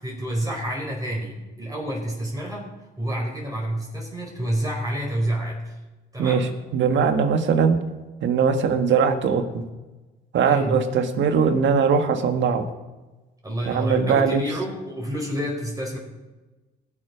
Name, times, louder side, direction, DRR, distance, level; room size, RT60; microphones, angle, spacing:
voice 1, 0.0-2.7 3.0-5.7 6.1-6.5 10.4-10.8 13.4-16.0, right 1 dB, 20° right, -2 dB, 4.7 m, -28 dB
voice 2, 6.2-7.8 8.2-9.6 10.3-12.7 13.6-14.4, right 6 dB, 70° right, 6 dB, 1.6 m, -21 dB
21.0 x 7.4 x 5.1 m, 1.2 s
cardioid pair, 90°, 20 cm